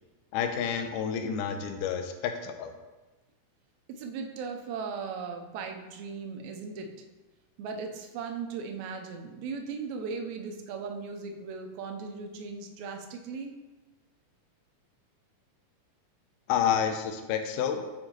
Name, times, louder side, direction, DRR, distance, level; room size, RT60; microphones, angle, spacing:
voice 1, 0.3-2.7 16.5-17.9, left 8 dB, 80° left, 6 dB, 2.1 m, -29 dB
voice 2, 3.9-6.9 7.6-13.5, right 5 dB, 75° right, 4 dB, 1.8 m, -37 dB
8.6 x 4.5 x 2.9 m, 1.2 s
omnidirectional pair, 3.8 m